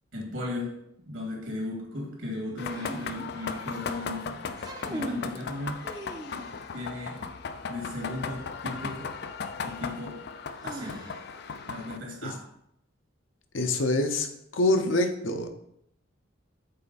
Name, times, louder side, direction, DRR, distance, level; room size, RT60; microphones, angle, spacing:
voice 1, 0.1-0.8 1.1-5.8 6.7-7.2 7.7-9.1 9.6-10.2 10.6-11.1 11.7-12.4, left 2 dB, 65° right, -1 dB, 2.5 m, -36 dB
sound 1, 2.6-12.0, left 5 dB, 55° left, 0.4 m, -37 dB
sound 2, 2.7-3.9 4.5-5.4 5.8-6.7 8.7-8.8 10.6-11.5, right 1 dB, 20° right, 0.7 m, -39 dB
voice 2, 13.5-14.3 14.5-15.5, left 2 dB, 75° left, 6 dB, 0.8 m, -25 dB
7.6 x 4.4 x 4.1 m, 0.76 s
head